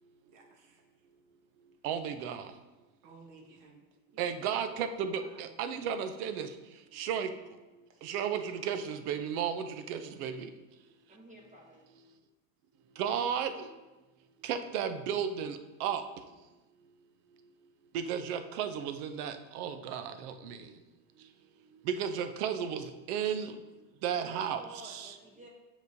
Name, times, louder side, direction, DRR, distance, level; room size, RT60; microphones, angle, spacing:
voice 1, 0.3-0.8 3.0-3.8 4.1-4.3 4.7-4.8 5.2-5.4 7.9-8.0, right 3 dB, 45° right, 2 dB, 1.3 m, -56 dB
voice 2, 1.8-2.5 4.2-6.5 6.9-7.3 8.0-10.5 13.0-13.7 14.4-16.0 17.9-20.6 21.9-23.5 24.0-25.1, right 8 dB, 75° right, 9 dB, 0.7 m, -34 dB
voice 3, 11.1-11.9 24.3-25.5, equal, 15° right, -2 dB, 1.0 m, -53 dB
7.6 x 5.0 x 2.7 m, 1.1 s
supercardioid pair, 115°, 44 cm